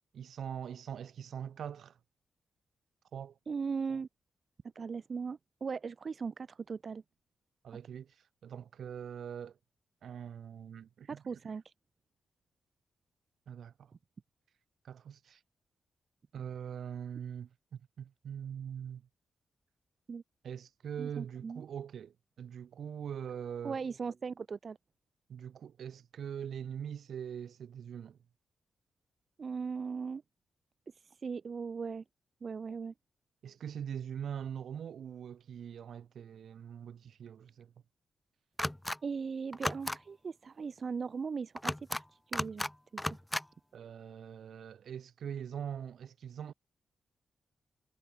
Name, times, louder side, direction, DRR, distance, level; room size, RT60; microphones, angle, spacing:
voice 1, 0.1-2.0 3.1-3.4 7.6-9.6 10.0-11.2 13.5-13.9 14.8-15.4 16.3-19.1 20.4-23.8 25.3-28.2 33.4-37.7 43.7-46.5, right 8 dB, 75° right, 3.7 m, -42 dB
voice 2, 3.5-4.1 4.7-7.0 11.0-11.7 20.1-20.2 21.0-21.6 23.6-24.8 29.4-30.2 30.9-32.0 32.4-32.9 39.0-42.7 42.9-43.1, right 5 dB, 55° right, 1.1 m, -38 dB
sound 1, 38.6-39.0 39.5-40.0 41.6-42.0 42.3-42.7 43.0-43.4, left 1 dB, 10° left, 0.7 m, -34 dB
supercardioid pair, 50°, 0 cm